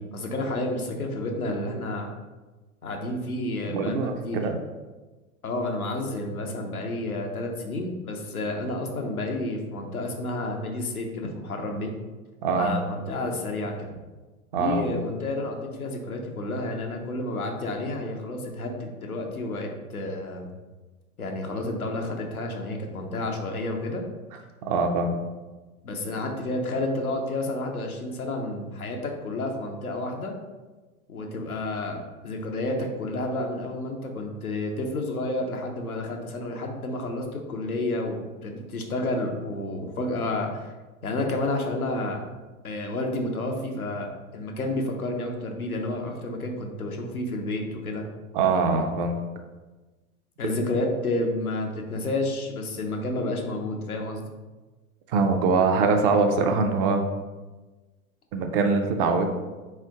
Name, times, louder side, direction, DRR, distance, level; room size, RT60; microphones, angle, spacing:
voice 1, 0.0-2.1 2.8-4.4 5.4-11.9 12.6-13.9 14.5-20.5 21.2-24.0 25.8-30.3 31.1-40.7 41.0-42.3 42.6-48.0 50.4-54.3, left 2 dB, 90° left, 2 dB, 0.8 m, -30 dB
voice 2, 3.7-4.6 12.4-12.7 14.5-15.0 24.6-25.2 48.3-49.2 55.1-57.0 58.3-59.3, right 4 dB, 40° right, 5 dB, 0.5 m, -23 dB
3.7 x 3.3 x 3.5 m, 1.2 s
figure-of-eight pair, 100°, 42 cm